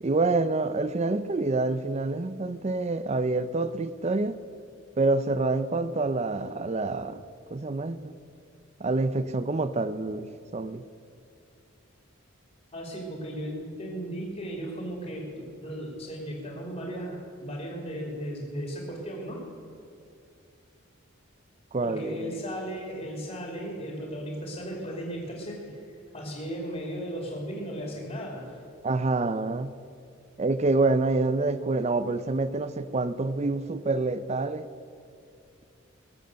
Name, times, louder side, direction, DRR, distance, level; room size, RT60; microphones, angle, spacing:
voice 1, 0.0-4.4 5.0-7.2 7.5-8.1 8.8-10.8 21.7-22.3 28.8-29.7 30.4-34.7, right 3 dB, 30° right, 14 dB, 0.5 m, -27 dB
voice 2, 12.7-15.3 15.6-19.4 21.8-25.7 26.1-28.5, equal, 35° left, -1 dB, 2.6 m, -36 dB
20.5 x 7.9 x 6.4 m, 2.5 s
head